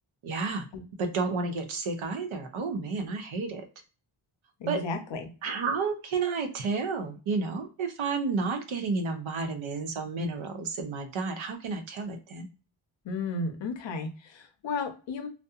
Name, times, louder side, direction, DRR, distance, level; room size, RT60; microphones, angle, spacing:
voice 1, 0.2-0.7 1.0-3.6 4.7-4.8 5.4-12.5, right 4 dB, 75° right, 6 dB, 0.7 m, -31 dB
voice 2, 4.6-5.3 13.0-15.3, left 3 dB, 65° left, 6 dB, 0.7 m, -33 dB
2.7 x 2.0 x 2.4 m, 0.35 s
wide cardioid pair, 130°, 48 cm